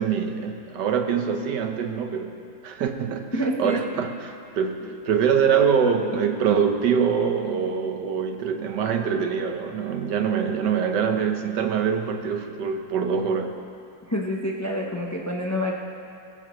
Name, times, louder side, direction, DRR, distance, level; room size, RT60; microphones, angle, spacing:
voice 1, 0.0-2.3 2.6-3.3 3.6-13.6, right 7 dB, 65° right, 5 dB, 1.5 m, -24 dB
voice 2, 3.3-4.0 14.1-15.7, equal, 25° left, -1 dB, 0.3 m, -27 dB
19.0 x 15.5 x 3.2 m, 2.4 s
omnidirectional pair, 2.2 m